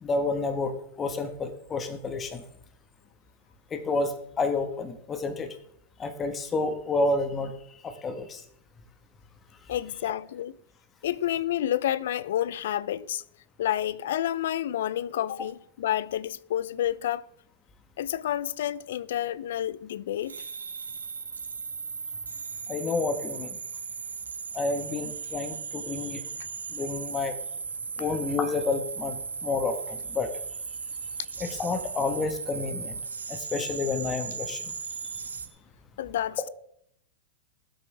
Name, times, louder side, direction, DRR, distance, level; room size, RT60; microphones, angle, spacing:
voice 1, 0.0-0.7 1.0-2.4 3.7-5.5 6.0-7.5 7.8-8.4 22.7-23.5 24.5-26.2 26.7-27.3 28.0-30.3 31.4-33.0 33.3-34.6, left 3 dB, 25° left, 1.7 m, -29 dB
voice 2, 9.7-10.5 11.0-13.2 13.6-17.2 18.0-20.3 36.0-36.5, left 11 dB, 70° left, 0.6 m, -29 dB
sound 1, 20.2-35.5, right 5 dB, 90° right, 1.8 m, -37 dB
21.0 x 8.7 x 3.5 m
hypercardioid pair, 105°, 0 cm